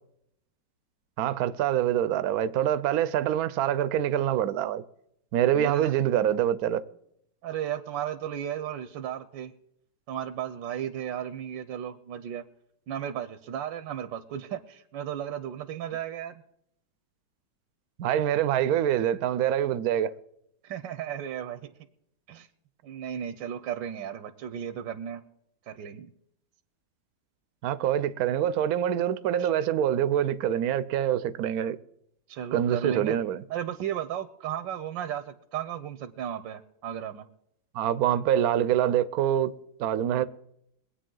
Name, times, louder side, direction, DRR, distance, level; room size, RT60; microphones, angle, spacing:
voice 1, 1.2-4.8 5.3-6.8 18.0-20.1 27.6-31.8 32.5-33.4 37.7-39.5 39.8-40.2, right 10 dB, 65° right, 1.0 m, -25 dB
voice 2, 5.5-5.9 7.4-9.5 10.1-12.4 12.9-16.4 20.6-21.7 22.3-22.5 22.8-25.2 25.7-26.1 29.4-29.5 32.3-33.2 33.5-37.3 40.2-40.3, right 10 dB, 80° right, 1.4 m, -35 dB
22.5 x 8.4 x 3.8 m
omnidirectional pair, 2.0 m